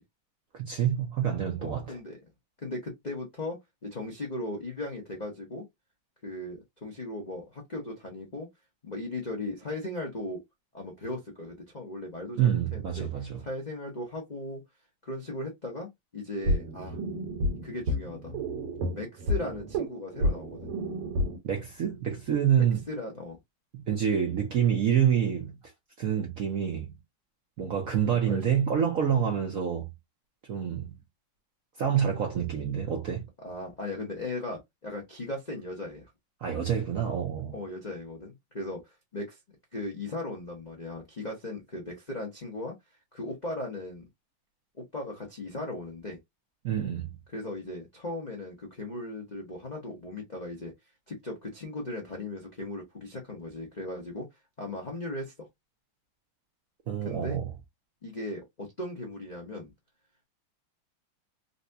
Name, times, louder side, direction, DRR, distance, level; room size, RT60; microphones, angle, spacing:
voice 1, 0.6-2.0 12.4-13.4 21.4-22.8 23.7-25.6 26.0-26.9 27.6-29.9 30.5-31.0 31.8-33.3 36.4-37.6 46.6-47.2 56.9-57.5, right 8 dB, 65° right, 0.8 m, -27 dB
voice 2, 1.6-2.2 2.6-5.6 6.2-8.5 8.8-10.4 10.7-13.1 13.4-14.6 15.0-17.0 17.6-18.3 18.9-20.7 22.9-23.4 28.1-28.4 33.4-36.0 37.5-39.4 39.7-42.7 43.1-44.0 44.8-46.2 47.3-50.7 51.1-54.3 54.6-55.5 57.0-57.4 58.0-59.7, left 1 dB, 65° left, 0.4 m, -37 dB
sound 1, 16.4-21.4, equal, 85° right, 1.9 m, -30 dB
4.1 x 2.2 x 2.6 m
omnidirectional pair, 2.4 m